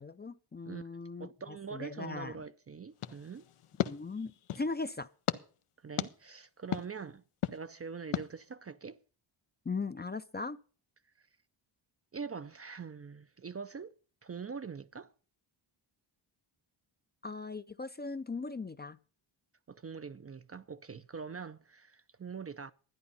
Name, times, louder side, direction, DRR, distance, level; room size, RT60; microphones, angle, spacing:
voice 1, 0.0-2.4 3.9-5.1 9.7-10.6 17.2-19.0, left 3 dB, 20° left, 0.5 m, -39 dB
voice 2, 0.6-3.5 5.8-7.2 7.5-9.0 11.2-11.3 12.1-14.0 14.2-15.1 19.7-22.7, right 5 dB, 30° right, 0.5 m, -44 dB
sound 1, 3.0-4.7 5.3-5.4 6.0-6.1 6.7-6.8 7.4-7.6 8.1-8.3, left 11 dB, 85° left, 0.8 m, -35 dB
12.0 x 9.9 x 5.5 m
cardioid pair, 90°, 49 cm